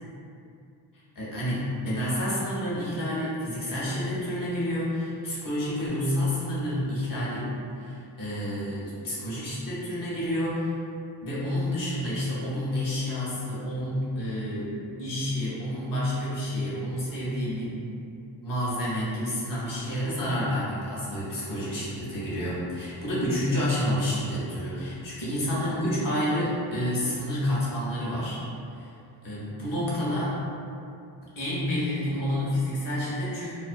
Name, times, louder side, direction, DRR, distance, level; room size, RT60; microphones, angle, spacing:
voice 1, 1.1-10.7 11.2-14.7 15.0-17.8 18.4-28.4 28.7-28.9 29.2-30.4 31.4-33.5, left 1 dB, 40° left, -8 dB, 1.0 m, -29 dB
2.3 x 2.1 x 2.5 m, 2.5 s
cardioid pair, 90°, 49 cm